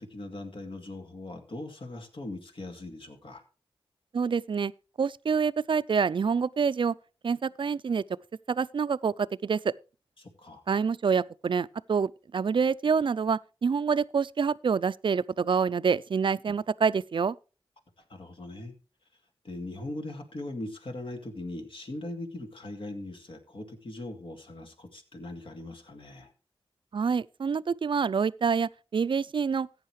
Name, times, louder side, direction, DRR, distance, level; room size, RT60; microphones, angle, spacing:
voice 1, 0.0-3.4 10.2-10.6 16.5-16.6 18.1-18.7 19.4-26.3, left 2 dB, 65° left, 2.3 m, -40 dB
voice 2, 4.1-4.7 5.0-6.9 7.2-8.0 8.5-9.7 10.7-17.4 26.9-29.7, right 6 dB, 60° right, 0.4 m, -27 dB
14.5 x 9.4 x 3.2 m
cardioid pair, 45°, 10 cm